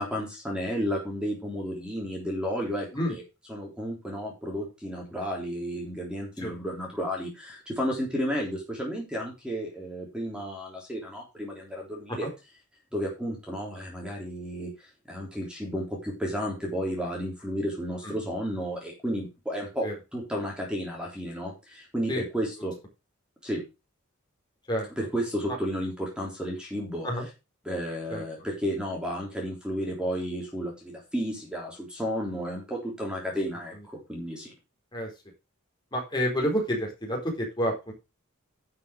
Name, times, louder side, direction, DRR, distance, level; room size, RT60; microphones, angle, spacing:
voice 1, 0.0-3.2 3.5-12.3 12.9-22.7 23.4-23.6 25.0-27.1 27.7-33.8 34.1-34.5, equal, 5° right, -1 dB, 3.5 m, -32 dB
voice 2, 35.9-37.9, equal, 20° left, 0 dB, 4.1 m, -29 dB
11.5 x 6.3 x 5.0 m, 0.27 s
head